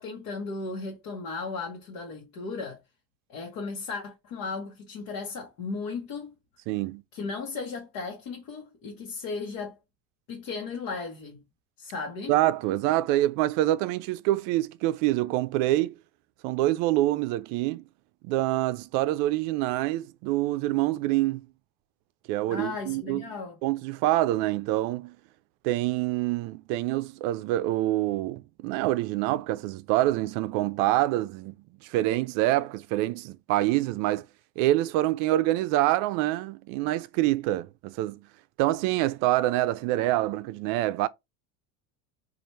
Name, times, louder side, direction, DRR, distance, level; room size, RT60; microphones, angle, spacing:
voice 1, 0.0-2.8 3.3-6.3 7.1-9.7 10.3-11.4 11.8-12.3 22.5-23.6, left 4 dB, 60° left, 1.1 m, -35 dB
voice 2, 6.7-7.0 12.3-15.9 16.4-17.8 18.2-21.4 22.3-23.2 23.6-25.2 25.6-31.5 31.8-34.3 34.6-38.2 38.6-41.1, right 15 dB, 65° right, 0.5 m, -26 dB
4.1 x 2.5 x 3.1 m
cardioid pair, 155°, 35 cm